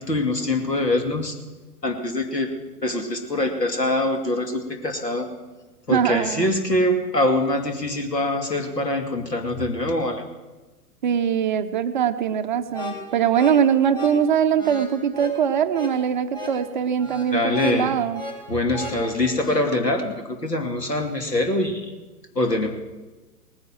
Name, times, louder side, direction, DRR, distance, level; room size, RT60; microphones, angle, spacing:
voice 1, 0.0-1.4 1.8-2.5 2.8-5.3 5.9-10.2 17.3-17.9 18.5-22.0 22.3-22.7, left 1 dB, 85° left, 4 dB, 2.7 m, -24 dB
voice 2, 5.9-6.4 11.0-18.2, right 8 dB, 30° right, 9 dB, 0.5 m, -22 dB
sound 1, 12.7-19.7, left 1 dB, 10° left, 2.1 m, -36 dB
18.5 x 9.8 x 7.6 m, 1.2 s
figure-of-eight pair, 115°, 47 cm